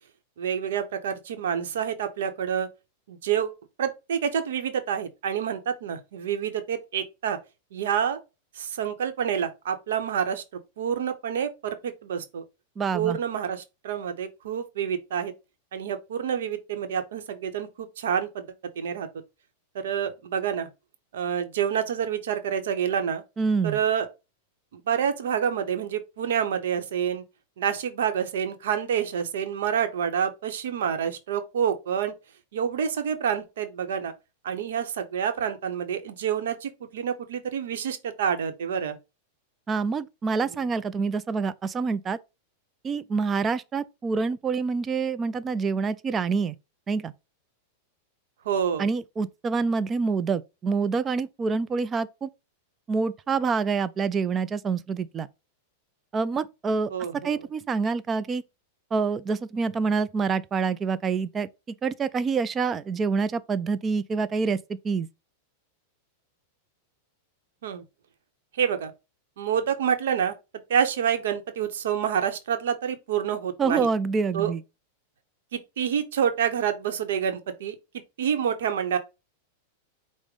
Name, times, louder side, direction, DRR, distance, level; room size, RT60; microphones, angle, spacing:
voice 1, 0.4-2.7 3.1-7.4 7.7-8.2 8.6-12.4 12.9-15.3 15.7-18.5 18.8-19.1 19.8-20.7 21.1-23.2 23.6-24.1 24.7-27.2 27.6-32.1 32.5-34.1 34.4-39.0 48.4-48.9 56.9-57.4 67.6-67.8 68.6-68.9 69.4-70.3 70.7-73.9 74.3-74.5 75.5-77.7 78.2-79.0, right 8 dB, 80° right, 0.8 m, -28 dB
voice 2, 12.8-13.2 23.4-23.8 39.7-42.2 42.8-46.6 46.9-47.1 48.8-52.3 52.9-55.3 56.1-56.9 57.2-58.4 58.9-61.5 61.8-64.6 64.8-65.1 73.6-74.6, right 5 dB, 20° right, 0.3 m, -26 dB
5.1 x 2.1 x 4.8 m
hypercardioid pair, 130°, 0 cm